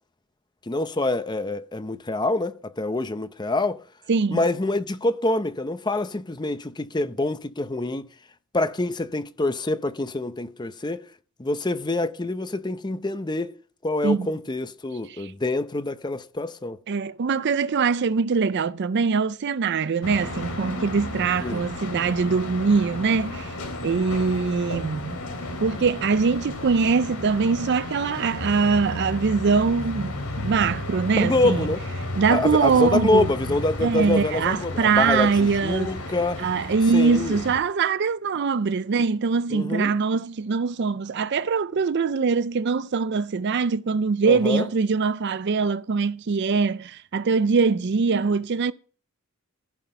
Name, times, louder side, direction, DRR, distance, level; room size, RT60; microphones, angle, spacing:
voice 1, 0.7-3.8 4.3-8.1 8.5-11.1 11.4-13.5 13.8-16.8 21.4-21.6 31.1-31.8 32.3-36.4 36.9-37.4 39.5-39.9 44.3-44.7, left 2 dB, 20° left, 0.6 m, -26 dB
voice 2, 4.1-4.4 14.0-14.3 15.1-15.3 16.9-23.5 23.8-25.2 25.6-31.7 32.2-33.3 33.8-35.9 36.4-48.7, right 5 dB, 50° right, 0.4 m, -23 dB
sound 1, 20.0-37.6, left 2 dB, 75° left, 3.1 m, -33 dB
15.0 x 5.8 x 5.5 m
head